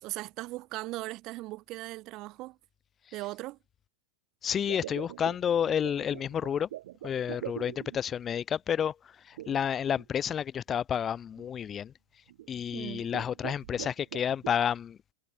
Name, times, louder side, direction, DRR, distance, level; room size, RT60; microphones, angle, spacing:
voice 1, 0.0-2.6 3.1-3.6 12.7-13.1, right 19 dB, 45° right, 2.8 m, -38 dB
voice 2, 4.4-6.7 7.0-8.9 9.3-11.9 12.5-15.0, left 8 dB, 25° left, 0.9 m, -30 dB
sound 1, 4.6-8.2 9.4-10.0 10.7-10.8 11.4-11.7 12.3-12.6 13.0-14.6, right 14 dB, 75° right, 2.2 m, -43 dB
supercardioid pair, 125°, 0 cm